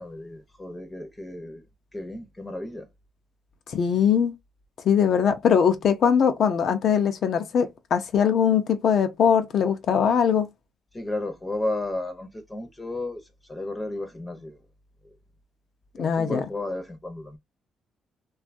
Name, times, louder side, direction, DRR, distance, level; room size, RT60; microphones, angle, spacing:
voice 1, 0.0-1.6 1.9-2.9 10.9-13.2 13.5-14.6 16.0-17.4, left 2 dB, 15° left, 0.7 m, -33 dB
voice 2, 3.7-4.3 4.8-10.5 16.0-16.5, left 7 dB, 65° left, 0.6 m, -21 dB
2.6 x 2.3 x 2.5 m
cardioid pair, 90°, 0 cm